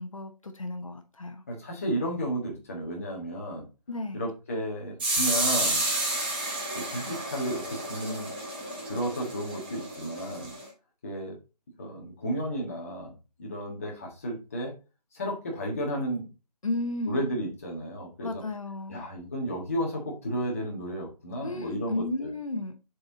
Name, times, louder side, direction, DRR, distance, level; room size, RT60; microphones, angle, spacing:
voice 1, 0.0-1.4 3.9-4.3 16.6-17.2 18.2-19.0 21.4-22.7, left 2 dB, 55° left, 6 dB, 1.0 m, -33 dB
voice 2, 1.5-3.7 4.1-5.8 6.7-8.3 8.9-10.5 11.0-11.3 11.8-14.7 15.1-16.3 17.0-18.4 18.9-22.3, equal, 20° left, 0 dB, 1.4 m, -33 dB
sound 1, 5.0-10.6, right 2 dB, 15° right, 1.5 m, -31 dB
6.8 x 4.2 x 3.9 m, 0.29 s
figure-of-eight pair, 170°, 21 cm